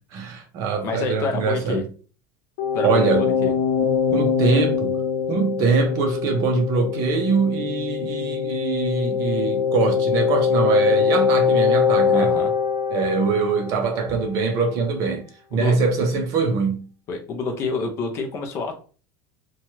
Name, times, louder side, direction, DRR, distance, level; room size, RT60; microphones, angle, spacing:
voice 1, 0.1-1.8 2.8-3.3 4.1-4.9 5.3-12.3 12.9-15.2 15.5-16.8, right 4 dB, 35° right, 0.6 m, -23 dB
voice 2, 0.8-1.8 2.7-3.5 12.1-12.5 15.5-15.8 17.1-18.8, left 4 dB, 30° left, 0.4 m, -28 dB
sound 1, 2.6-14.2, left 6 dB, 70° left, 0.7 m, -23 dB
2.9 x 2.2 x 3.0 m
cardioid pair, 175°, 10 cm